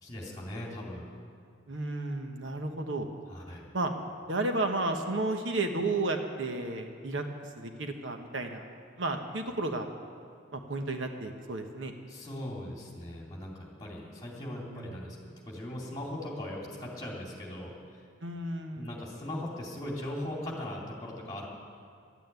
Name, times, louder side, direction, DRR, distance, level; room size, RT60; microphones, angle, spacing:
voice 1, 0.0-1.1 3.3-3.7 12.1-17.7 18.8-21.5, left 1 dB, 20° left, -3 dB, 2.9 m, -39 dB
voice 2, 1.7-3.1 3.7-3.9 4.3-7.2 7.5-9.9 10.5-11.9 14.7-14.9 18.2-18.9, right 2 dB, 75° right, 4 dB, 1.1 m, -32 dB
12.0 x 9.0 x 9.4 m, 2.2 s
head